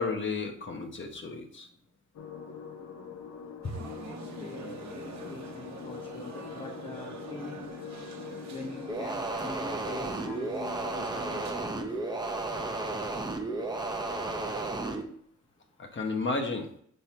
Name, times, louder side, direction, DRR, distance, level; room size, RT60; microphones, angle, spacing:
voice 1, 0.0-1.7 11.9-12.0 15.8-16.7, left 4 dB, 40° left, 1.0 m, -32 dB
voice 2, 1.4-1.8 3.8-16.0, left 2 dB, 20° left, 0.8 m, -46 dB
sound 1, 2.1-9.1, left 6 dB, 75° left, 0.9 m, -43 dB
sound 2, 3.6-11.5, right 4 dB, 65° right, 1.0 m, -46 dB
sound 3, 8.9-15.0, right 2 dB, 15° right, 0.7 m, -33 dB
5.4 x 4.8 x 4.4 m
wide cardioid pair, 140°, 30 cm